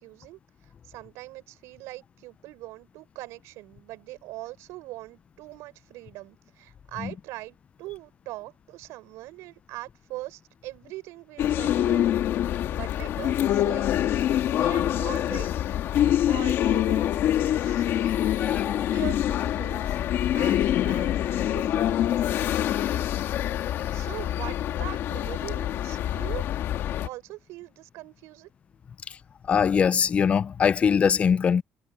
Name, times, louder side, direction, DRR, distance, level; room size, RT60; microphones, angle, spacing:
voice 1, 0.0-14.2 14.5-15.7 16.3-18.2 18.5-20.0 20.3-22.7 23.9-26.5 27.0-28.5, right 19 dB, 90° right, 6.4 m, -42 dB
sound 1, 11.4-27.1, left 11 dB, 55° left, 1.6 m, -25 dB
voice 2, 18.4-18.9 29.5-31.6, left 7 dB, 25° left, 0.3 m, -22 dB
cardioid pair, 170°, 5 cm